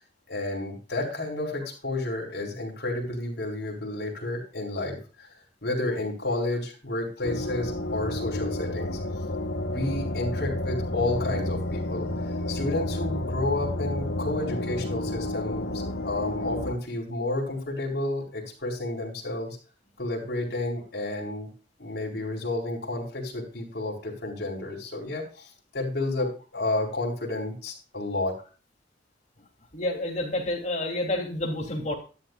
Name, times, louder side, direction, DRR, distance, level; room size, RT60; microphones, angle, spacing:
voice 1, 0.3-5.3 5.6-9.0 9.7-19.6 20.0-21.5 21.8-28.4, left 2 dB, 60° left, -2 dB, 4.3 m, -31 dB
sound 1, 7.2-16.7, left 1 dB, 80° left, 1.4 m, -31 dB
voice 2, 29.7-31.9, left 1 dB, 40° left, 1 dB, 3.1 m, -29 dB
13.0 x 10.0 x 2.4 m, 0.35 s
head